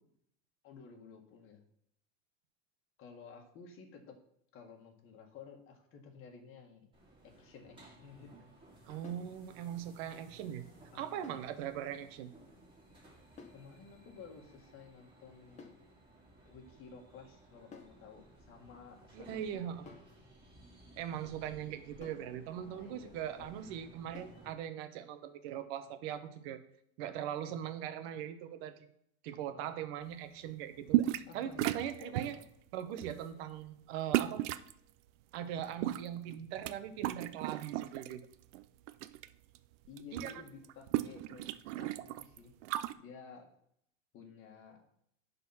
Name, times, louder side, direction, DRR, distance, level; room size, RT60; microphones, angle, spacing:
voice 1, 0.6-1.6 3.0-4.2 4.5-6.9 7.2-8.5 10.9-11.4 13.5-15.8 16.5-19.6 22.6-23.5 29.5-29.7 31.3-32.4 39.9-42.6 43.0-43.5 44.1-44.8, left 5 dB, 35° left, 3 dB, 1.7 m, -53 dB
sound 1, 6.9-24.5, right 1 dB, 15° right, 2.9 m, -59 dB
voice 2, 8.8-10.6 10.9-12.3 19.1-19.8 21.0-26.6 27.0-28.9 29.2-31.0 31.3-32.4 32.7-34.4 35.3-38.2 40.1-40.3, right 10 dB, 60° right, 10 dB, 1.1 m, -40 dB
sound 2, 9.0-9.3 11.2-11.5 13.4-13.7 15.6-15.9 17.7-18.0 19.9-20.2 22.0-22.3 24.1-24.4, left 4 dB, 20° left, 0.9 m, -53 dB
sound 3, 30.9-31.3 31.6-32.4 33.0-33.2 34.1-34.7 35.6-36.7 37.0-38.1 38.5-39.3 39.5-39.6 39.9-42.9, right 15 dB, 85° right, 0.6 m, -34 dB
10.0 x 4.2 x 5.7 m, 0.71 s
supercardioid pair, 155°, 35 cm